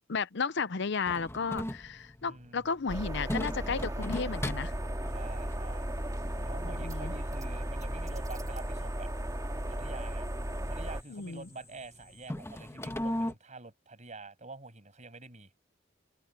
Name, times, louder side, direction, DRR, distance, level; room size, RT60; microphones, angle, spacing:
voice 1, 0.1-4.7 6.6-7.1 11.1-11.5, left 5 dB, 60° left, 0.7 m, -33 dB
sound 1, 1.1-13.3, left 1 dB, 15° left, 1.3 m, -41 dB
voice 2, 2.2-2.6 5.1-5.9 6.4-9.1 9.7-10.3 10.7-15.5, right 3 dB, 40° right, 6.8 m, -47 dB
sound 2, 2.9-11.0, right 1 dB, 20° right, 2.1 m, -35 dB
head